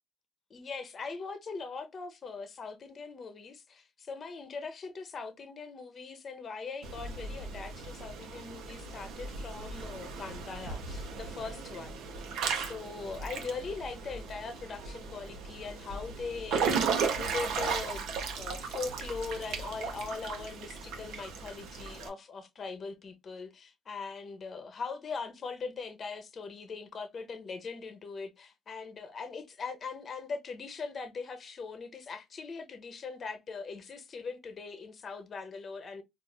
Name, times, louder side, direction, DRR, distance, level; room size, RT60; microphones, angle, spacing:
voice 1, 0.5-36.0, left 4 dB, 35° left, 0.7 m, -41 dB
Water / Splash splatter / Drip, 6.8-22.1, right 5 dB, 80° right, 0.8 m, -36 dB
4.1 x 2.4 x 2.3 m
cardioid pair, 140°, 0 cm